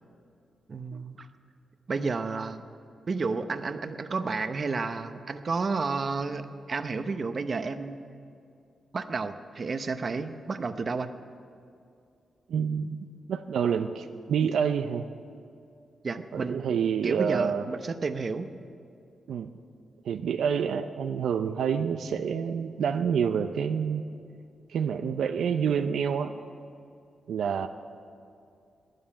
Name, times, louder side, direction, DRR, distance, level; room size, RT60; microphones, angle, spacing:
voice 1, 0.7-1.3 1.9-2.6 3.1-8.0 8.9-11.1 16.0-16.7 17.0-18.5, right 4 dB, 45° right, 10 dB, 0.8 m, -31 dB
voice 2, 12.5-13.0 13.3-15.1 16.3-17.7 19.3-19.5 20.0-24.1 24.7-26.3 27.3-27.7, right 7 dB, 85° right, 8 dB, 0.5 m, -28 dB
13.0 x 9.5 x 9.9 m, 2.4 s
cardioid pair, 90°, 0 cm